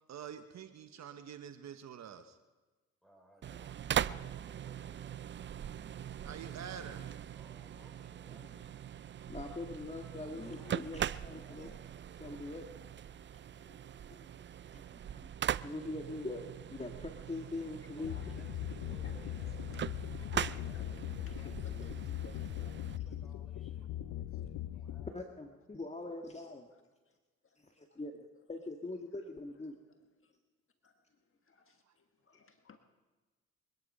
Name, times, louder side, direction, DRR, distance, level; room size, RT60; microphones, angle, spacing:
voice 1, 0.1-2.4 6.2-7.0, right 8 dB, 60° right, 9 dB, 1.2 m, -46 dB
voice 2, 3.0-5.4 7.3-8.8 10.4-12.4 17.9-21.6 22.0-23.9 24.3-25.2, equal, ahead, 1 dB, 6.0 m, -63 dB
sound 1, 3.4-23.0, right 9 dB, 40° right, 0.5 m, -41 dB
voice 3, 9.3-11.7 12.2-12.7 13.6-14.4 14.7-15.3 15.6-18.1 23.1-23.2 25.1-26.7 27.6-29.8, left 2 dB, 20° left, 3 dB, 1.8 m, -43 dB
voice 4, 17.4-18.7 19.0-20.3 20.7-22.6 22.9-23.0 24.3-24.4 26.7-27.2 27.4-28.0 30.2-30.4 30.8-32.8, left 5 dB, 45° left, 6 dB, 1.6 m, -60 dB
sound 2, 18.0-25.1, left 12 dB, 75° left, 0.6 m, -40 dB
24.0 x 10.5 x 5.5 m, 1.2 s
supercardioid pair, 60°, 30 cm